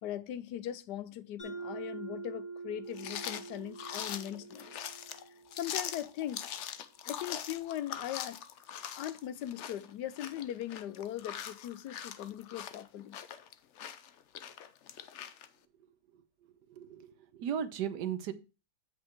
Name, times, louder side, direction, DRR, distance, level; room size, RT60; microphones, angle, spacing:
voice 1, 0.0-4.7 5.6-6.5 7.1-8.4 9.0-13.2, left 11 dB, 80° left, 1.2 m, -39 dB
Mallet percussion, 1.4-6.0, right 4 dB, 20° left, 4.8 m, -45 dB
sound 1, 2.9-15.5, left 9 dB, 60° left, 0.8 m, -42 dB
voice 2, 16.7-18.3, right 9 dB, 80° right, 1.4 m, -36 dB
8.1 x 5.4 x 4.3 m
omnidirectional pair, 1.8 m